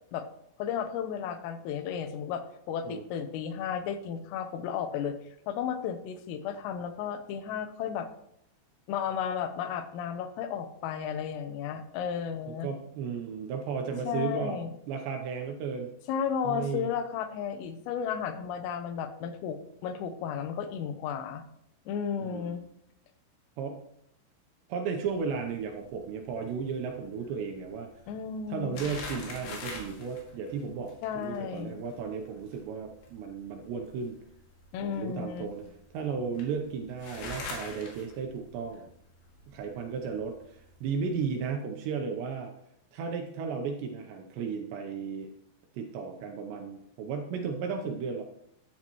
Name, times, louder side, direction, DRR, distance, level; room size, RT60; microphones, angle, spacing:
voice 1, 0.6-5.2 5.5-8.1 8.9-12.7 14.1-14.7 16.1-21.4 21.9-22.6 28.1-28.8 31.0-31.8 34.7-35.5, left 7 dB, 85° left, 9 dB, 3.5 m, -33 dB
voice 2, 12.5-14.6 14.9-15.9 16.4-16.9 22.2-22.6 23.6-23.8 24.7-27.9 28.5-34.2 34.8-35.7 35.9-38.9 39.5-42.5 42.9-45.3 45.7-48.2, right 6 dB, 75° right, 3 dB, 2.7 m, -34 dB
sound 1, 25.1-41.4, left 3 dB, 65° left, 4.0 m, -46 dB
13.5 x 10.5 x 3.0 m, 0.74 s
omnidirectional pair, 5.8 m